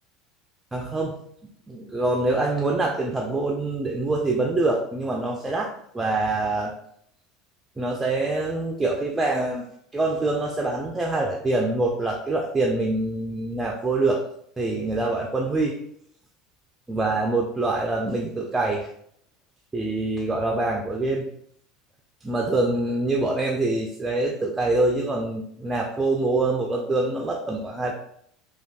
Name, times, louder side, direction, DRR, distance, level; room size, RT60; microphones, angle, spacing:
voice 1, 0.7-1.2 1.7-6.8 7.8-9.7 9.9-14.2 14.6-15.8 16.9-18.9 19.7-21.3 22.2-27.9, right 2 dB, 15° right, 0 dB, 0.3 m, -25 dB
3.2 x 2.2 x 2.3 m, 0.67 s
figure-of-eight pair, 70°, 0 cm